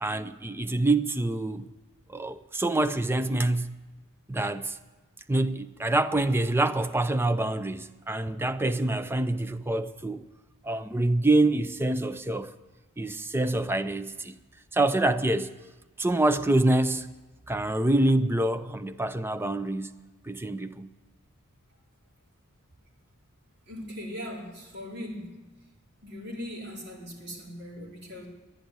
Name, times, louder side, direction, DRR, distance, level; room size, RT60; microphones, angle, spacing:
voice 1, 0.0-1.7 2.1-3.8 4.3-4.8 5.3-10.2 10.6-12.5 13.0-14.4 14.7-15.5 16.0-17.1 17.5-20.0 20.2-20.9, right 2 dB, 10° right, 0.5 m, -26 dB
voice 2, 23.7-25.4 26.0-28.3, equal, 50° right, 4.1 m, -39 dB
11.5 x 10.5 x 9.4 m
head